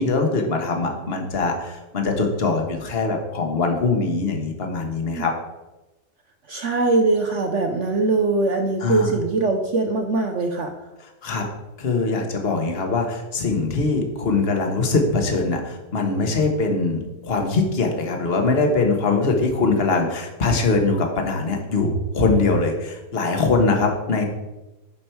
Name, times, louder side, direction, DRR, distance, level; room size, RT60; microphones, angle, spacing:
voice 1, 0.0-5.3 8.8-9.1 11.2-11.4 11.8-24.3, left 3 dB, 40° left, 3 dB, 1.4 m, -22 dB
voice 2, 6.5-10.7, right 3 dB, 55° right, 4 dB, 0.9 m, -22 dB
11.5 x 5.2 x 4.5 m, 1.0 s
omnidirectional pair, 1.9 m